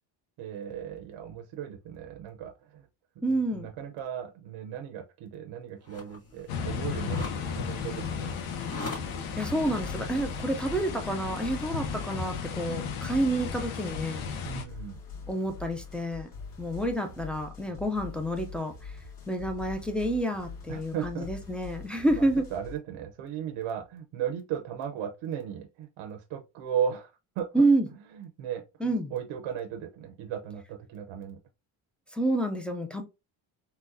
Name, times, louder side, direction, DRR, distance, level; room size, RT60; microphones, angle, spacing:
voice 1, 0.4-2.9 3.2-3.3 3.5-8.5 14.4-15.0 20.7-21.3 22.1-27.1 27.4-27.5 28.1-31.4, right 9 dB, 75° right, 0.7 m, -36 dB
voice 2, 3.2-3.7 9.4-14.2 15.3-16.3 16.6-18.9 19.3-22.5 27.5-27.9 28.8-29.1 32.1-33.0, right 1 dB, 5° left, 0.3 m, -28 dB
sound 1, 5.8-11.7, left 2 dB, 30° left, 1.5 m, -44 dB
sound 2, 6.5-14.6, left 6 dB, 85° left, 0.9 m, -34 dB
sound 3, 9.3-22.8, left 5 dB, 45° left, 1.7 m, -44 dB
3.9 x 2.2 x 2.5 m
cardioid pair, 125°, 49 cm